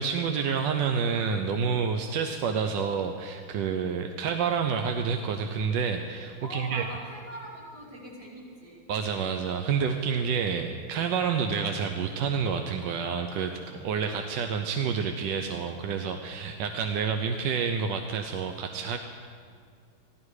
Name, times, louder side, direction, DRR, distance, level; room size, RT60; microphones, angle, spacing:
voice 1, 0.0-6.8 8.9-19.0, right 6 dB, 70° right, 5 dB, 1.2 m, -29 dB
voice 2, 6.4-8.8, equal, 50° right, -5 dB, 3.5 m, -42 dB
15.0 x 12.5 x 4.8 m, 2.1 s
omnidirectional pair, 2.3 m